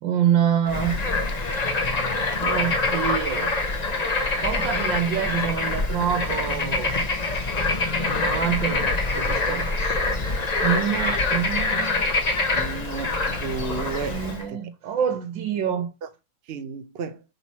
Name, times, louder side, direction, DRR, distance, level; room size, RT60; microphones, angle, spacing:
voice 1, 0.0-1.0 2.4-3.5 4.4-6.9 8.0-10.0 10.3-12.0 14.1-15.9, right 9 dB, 80° right, 1.6 m, -26 dB
Bird / Frog, 0.7-14.4, left 3 dB, 35° left, 0.6 m, -25 dB
voice 2, 12.5-14.2 14.5-14.6 16.5-17.2, right 5 dB, 60° right, 0.6 m, -32 dB
6.0 x 3.9 x 4.2 m
omnidirectional pair, 2.0 m